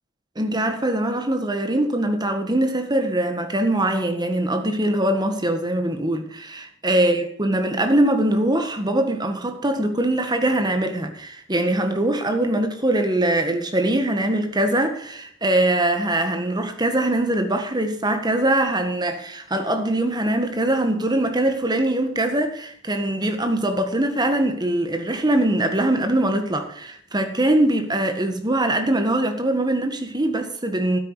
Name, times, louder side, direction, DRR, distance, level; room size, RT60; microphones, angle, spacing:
voice 1, 0.3-31.0, right 1 dB, 20° right, 1.7 m, -22 dB
12.5 x 9.6 x 4.9 m
head